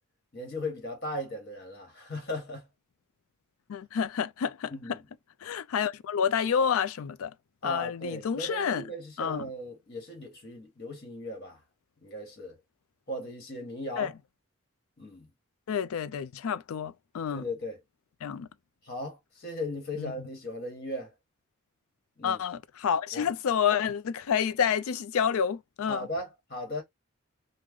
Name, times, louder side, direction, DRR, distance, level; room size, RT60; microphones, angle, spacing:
voice 1, 0.3-2.7 4.7-5.0 7.6-11.6 12.0-12.6 13.1-14.1 15.0-15.3 17.3-17.8 18.8-21.1 22.2-22.4 23.1-23.2 25.9-26.8, left 1 dB, 45° left, 1.3 m, -37 dB
voice 2, 3.7-5.0 5.4-7.3 7.6-8.9 9.2-9.5 14.0-14.1 15.7-17.5 18.2-18.5 20.0-20.1 22.2-26.1, left 7 dB, 75° left, 0.4 m, -29 dB
3.1 x 2.1 x 3.6 m
head